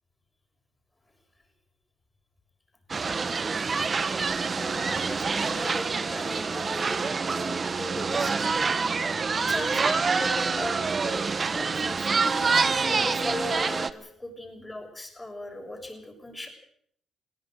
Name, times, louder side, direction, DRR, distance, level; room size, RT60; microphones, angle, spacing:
sound 1, 2.9-13.9, right 4 dB, 35° right, 1.1 m, -26 dB
voice 1, 4.5-8.6 9.3-11.2 11.5-12.4 12.8-16.5, left 1 dB, 15° left, 4 dB, 6.6 m, -38 dB
21.5 x 17.0 x 7.8 m, 0.67 s
cardioid pair, 90°, 0 cm